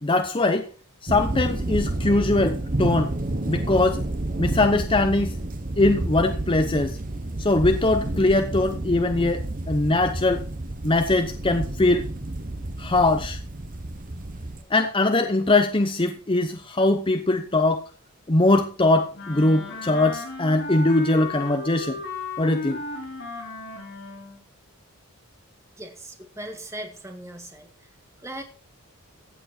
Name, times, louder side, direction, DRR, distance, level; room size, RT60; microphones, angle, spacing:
voice 1, 0.0-0.7 1.0-3.1 3.5-4.0 4.4-5.4 5.8-7.0 7.4-10.5 10.8-12.1 12.8-13.4 14.7-17.8 18.3-22.0 22.4-22.8, left 2 dB, 25° left, 7 dB, 0.8 m, -21 dB
sound 1, 1.1-14.6, right 1 dB, 40° right, 1.1 m, -30 dB
Wind instrument woodwind instrument, 19.1-24.4, left 3 dB, 55° left, 5.7 m, -34 dB
voice 2, 25.8-27.7 28.2-28.4, right 1 dB, 15° right, 5 dB, 1.6 m, -38 dB
15.5 x 7.9 x 4.4 m, 0.37 s
head